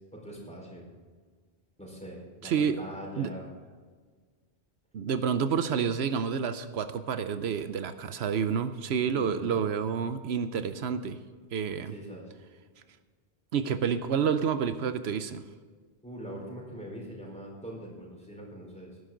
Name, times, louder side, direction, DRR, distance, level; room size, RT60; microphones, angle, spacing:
voice 1, 0.1-0.9 1.8-3.5 9.1-9.6 11.9-12.3 16.0-18.9, equal, 5° left, -2 dB, 4.5 m, -42 dB
voice 2, 2.4-2.8 3.2-3.3 4.9-11.2 11.5-11.9 13.5-15.4, right 7 dB, 85° right, 11 dB, 1.0 m, -29 dB
18.0 x 10.5 x 3.9 m, 1.5 s
omnidirectional pair, 1.1 m